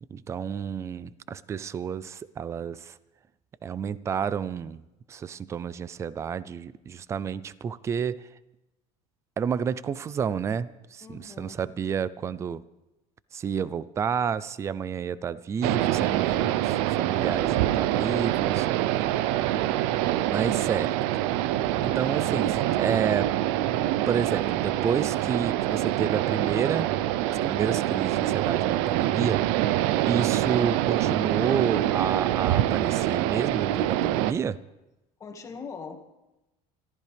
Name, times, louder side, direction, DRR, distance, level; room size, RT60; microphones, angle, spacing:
voice 1, 0.1-3.0 3.6-4.8 5.1-8.3 9.4-12.6 13.3-18.7 20.3-20.9 21.8-23.3 24.1-26.9 27.3-29.5 30.1-34.6, right 7 dB, 20° right, 18 dB, 0.4 m, -30 dB
voice 2, 11.0-11.6 19.0-19.4 35.2-36.0, left 5 dB, 20° left, 3 dB, 1.9 m, -42 dB
sound 1, 15.6-34.3, right 13 dB, 85° right, 0.6 m, -25 dB
25.5 x 14.5 x 3.5 m, 0.96 s
cardioid pair, 160°, 14 cm